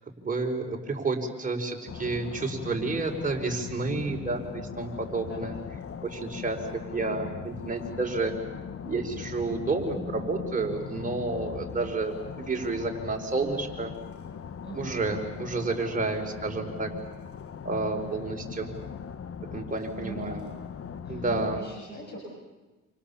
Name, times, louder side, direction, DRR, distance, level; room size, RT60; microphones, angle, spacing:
voice 1, 0.2-5.6 6.0-8.3 8.8-13.9 14.7-16.9 17.6-18.7 19.5-20.4 21.1-21.6, right 3 dB, 25° right, 2 dB, 5.4 m, -30 dB
sound 1, 1.9-21.6, left 7 dB, 50° left, 1.4 m, -40 dB
voice 2, 4.0-4.7 5.2-5.6 14.6-15.2 20.0-20.6 21.0-22.2, equal, 35° left, -1 dB, 7.6 m, -41 dB
28.5 x 28.0 x 7.3 m, 1.2 s
cardioid pair, 90°, 30 cm